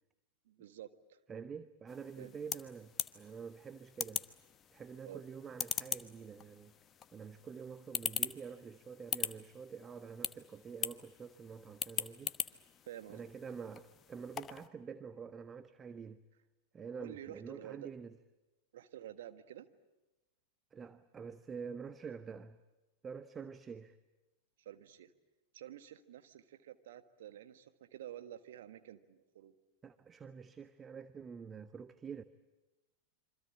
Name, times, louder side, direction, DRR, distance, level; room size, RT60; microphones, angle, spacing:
voice 1, 0.4-1.2 2.2-2.4 5.0-5.2 12.9-13.2 16.8-17.9 18.7-19.7 24.6-25.1 25.5-29.5, right 11 dB, 55° right, 1.5 m, -50 dB
voice 2, 1.3-4.2 4.7-6.7 7.1-12.4 13.1-16.2 16.7-18.1 20.7-22.6 23.0-24.0 29.8-32.2, right 6 dB, 20° right, 0.9 m, -47 dB
sound 1, 1.9-14.7, left 8 dB, 25° left, 1.1 m, -42 dB
27.5 x 25.0 x 8.6 m
figure-of-eight pair, 90°, 0 cm